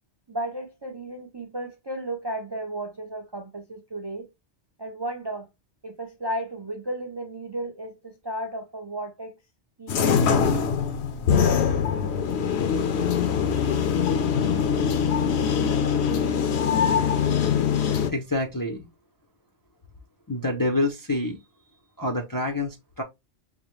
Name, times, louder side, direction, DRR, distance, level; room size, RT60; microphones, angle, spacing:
voice 1, 0.3-4.3 4.8-5.5 5.8-9.4 9.8-10.2, right 1 dB, 35° right, 0.4 m, -34 dB
sound 1, 9.9-18.1, left 7 dB, 75° left, 0.9 m, -23 dB
voice 2, 18.1-18.9 20.3-21.4 22.0-23.0, left 2 dB, 30° left, 0.4 m, -27 dB
5.2 x 2.1 x 3.0 m
omnidirectional pair, 1.1 m